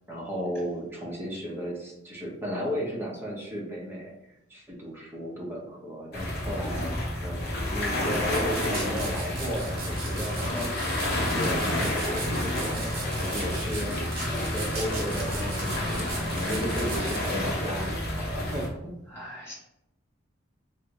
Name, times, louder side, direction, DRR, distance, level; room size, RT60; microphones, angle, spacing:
voice 1, 0.1-4.1 4.5-10.7 11.2-14.0 14.3-18.9, equal, 10° right, -4 dB, 0.8 m, -34 dB
sound 1, 6.1-18.7, left 1 dB, 55° left, 0.8 m, -29 dB
sound 2, 8.1-17.3, right 3 dB, 50° right, 0.9 m, -39 dB
voice 2, 19.1-19.5, equal, 15° left, -8 dB, 1.4 m, -43 dB
3.3 x 2.5 x 3.0 m, 0.87 s
head